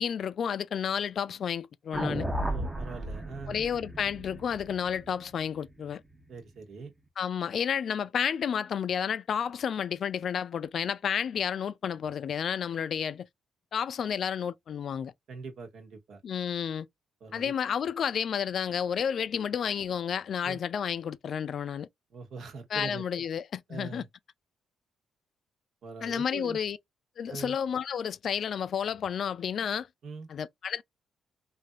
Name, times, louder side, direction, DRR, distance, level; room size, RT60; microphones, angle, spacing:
voice 1, 0.0-2.3 3.5-6.0 7.2-13.3 13.7-15.1 16.2-16.9 17.3-21.9 22.7-24.1 26.0-26.8 27.2-29.9 30.3-30.8, left 8 dB, 60° left, 0.4 m, -31 dB
sound 1, 1.9-6.2, right 1 dB, 15° right, 0.8 m, -35 dB
voice 2, 2.5-3.6 6.3-6.9 15.3-16.2 17.2-17.5 20.4-20.6 22.1-23.0 23.7-24.1 25.8-26.6 27.3-27.5 30.0-30.3, right 4 dB, 65° right, 1.2 m, -42 dB
3.3 x 2.6 x 2.4 m
cardioid pair, 90°, 0 cm